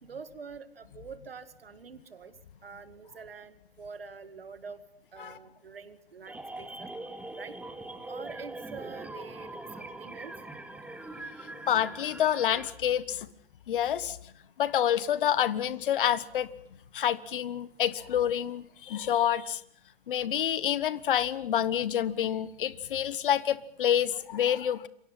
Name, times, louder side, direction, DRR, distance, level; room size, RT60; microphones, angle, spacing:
voice 1, 0.0-4.8 5.1-6.9 7.4-7.6 8.1-9.5 9.8-10.3, right 5 dB, 75° right, 13 dB, 2.2 m, -45 dB
sound 1, 6.3-12.7, right 2 dB, 5° right, 2.4 m, -42 dB
voice 2, 11.7-13.3 13.7-14.2 14.6-16.5 16.9-19.6 20.1-24.9, left 10 dB, 60° left, 18 dB, 1.4 m, -28 dB
27.5 x 24.0 x 5.7 m, 0.66 s
figure-of-eight pair, 105°, 29 cm